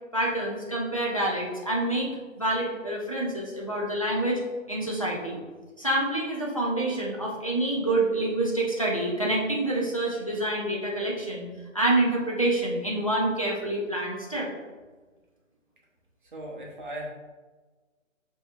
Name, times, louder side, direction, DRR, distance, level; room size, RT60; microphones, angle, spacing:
voice 1, 0.1-2.1 2.4-4.4 4.7-5.4 5.8-11.5 11.7-14.5, right 1 dB, 25° left, -4 dB, 0.4 m, -27 dB
voice 2, 16.3-17.1, right 1 dB, 40° right, -2 dB, 0.9 m, -37 dB
6.5 x 2.9 x 2.4 m, 1.3 s
hypercardioid pair, 160°, 40 cm